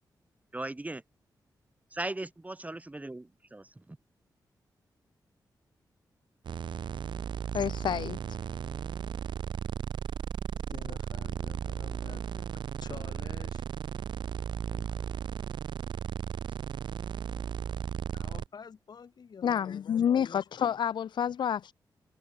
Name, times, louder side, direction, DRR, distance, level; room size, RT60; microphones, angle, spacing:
voice 1, 0.5-1.0 1.9-4.0, right 2 dB, 20° right, 6.1 m, -38 dB
sound 1, 6.4-18.5, right 8 dB, 80° right, 3.2 m, -35 dB
voice 2, 7.5-8.2 19.4-21.7, left 8 dB, 80° left, 1.0 m, -29 dB
voice 3, 10.5-12.5 12.8-13.6 14.7-15.1 18.1-20.4, left 6 dB, 60° left, 7.3 m, -49 dB
cardioid pair, 85°, 8 cm